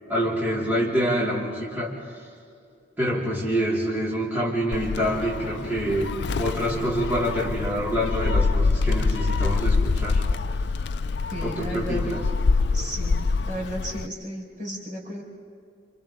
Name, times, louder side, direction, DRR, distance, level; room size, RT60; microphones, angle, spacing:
voice 1, 0.1-1.9 3.0-6.1 6.4-10.2 11.4-12.2, equal, 10° right, -8 dB, 4.4 m, -26 dB
Gull seagull, 4.7-14.1, left 4 dB, 60° left, 0.4 m, -25 dB
voice 2, 11.3-12.0 12.7-15.2, right 1 dB, 40° right, -2 dB, 4.7 m, -34 dB
30.0 x 28.5 x 3.7 m, 2.4 s
head